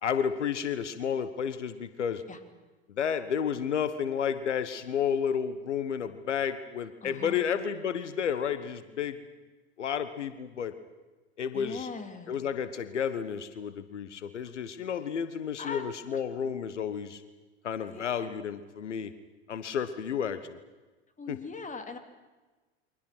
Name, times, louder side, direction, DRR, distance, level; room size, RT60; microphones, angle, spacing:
voice 1, 0.0-2.2 2.9-9.2 9.8-10.7 11.4-11.9 12.3-17.2 17.6-19.1 19.5-20.6 21.3-21.4, left 7 dB, 85° left, 12 dB, 1.3 m, -31 dB
voice 2, 7.0-7.4 11.5-12.3 14.4-14.5 15.6-15.8 16.1-16.2 17.9-18.3 21.2-22.0, left 5 dB, 20° left, 7 dB, 3.4 m, -40 dB
29.0 x 24.0 x 6.2 m, 1.2 s
hypercardioid pair, 80°, 35 cm